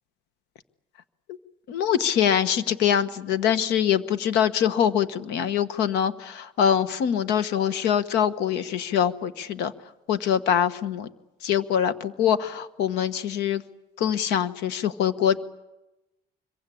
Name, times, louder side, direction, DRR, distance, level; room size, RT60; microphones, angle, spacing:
voice 1, 1.7-9.7 10.1-11.1 11.4-13.6 14.0-15.4, left 9 dB, 90° left, 13 dB, 1.3 m, -24 dB
25.0 x 23.0 x 8.5 m, 1.0 s
cardioid pair, 110°, 17 cm